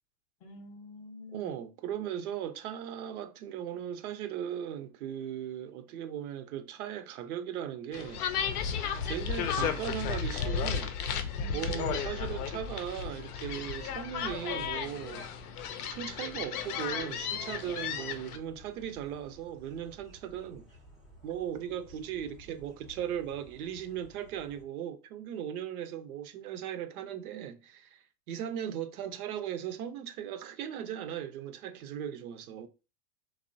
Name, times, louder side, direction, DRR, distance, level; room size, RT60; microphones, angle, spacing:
voice 1, 0.4-1.5 11.3-12.0, left 2 dB, 35° left, 0.6 m, -46 dB
voice 2, 1.3-8.3 9.0-11.0 11.5-15.3 15.8-20.7 21.2-32.7, right 10 dB, 75° right, 0.5 m, -38 dB
sound 1, 7.9-18.4, left 7 dB, 80° left, 0.6 m, -34 dB
sound 2, 14.1-24.6, right 1 dB, ahead, 0.4 m, -55 dB
2.9 x 2.0 x 2.5 m
hypercardioid pair, 115°, 44 cm